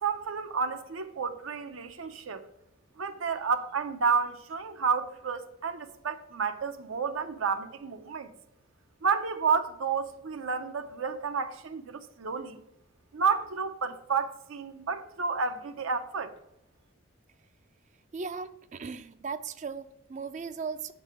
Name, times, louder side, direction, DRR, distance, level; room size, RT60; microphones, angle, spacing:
voice 1, 0.0-2.5 3.0-8.3 9.0-12.6 13.1-16.3, right 5 dB, 85° right, 0.6 m, -31 dB
voice 2, 18.1-20.9, right 5 dB, 35° right, 0.3 m, -37 dB
7.2 x 4.0 x 6.6 m
head